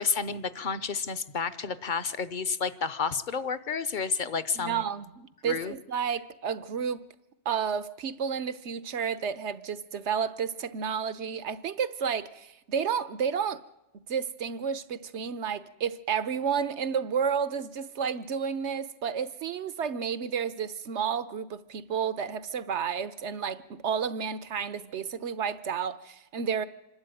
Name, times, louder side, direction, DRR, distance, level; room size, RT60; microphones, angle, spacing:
voice 1, 0.0-4.9 5.4-5.7, left 5 dB, 50° left, 0.9 m, -30 dB
voice 2, 4.6-7.0 7.4-13.6 13.9-26.7, right 7 dB, 80° right, 1.2 m, -31 dB
26.0 x 12.0 x 9.0 m
omnidirectional pair, 1.2 m